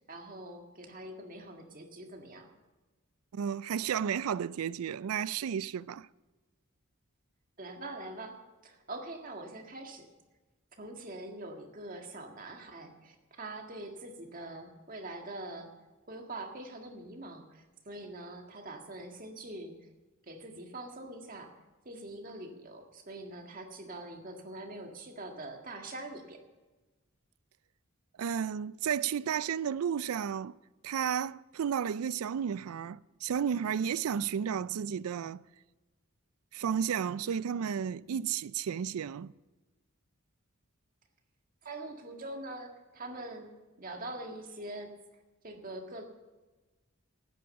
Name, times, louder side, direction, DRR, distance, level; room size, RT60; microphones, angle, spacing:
voice 1, 0.1-2.5 7.6-8.4 8.6-10.1 10.8-15.7 16.1-19.8 20.3-21.5 21.9-26.4 41.6-43.5 43.8-44.9 45.4-46.1, right 2 dB, 40° right, 1.8 m, -44 dB
voice 2, 3.3-6.1 28.2-30.5 30.8-35.4 36.5-39.3, right 8 dB, 90° right, 0.4 m, -32 dB
13.5 x 9.7 x 7.1 m
head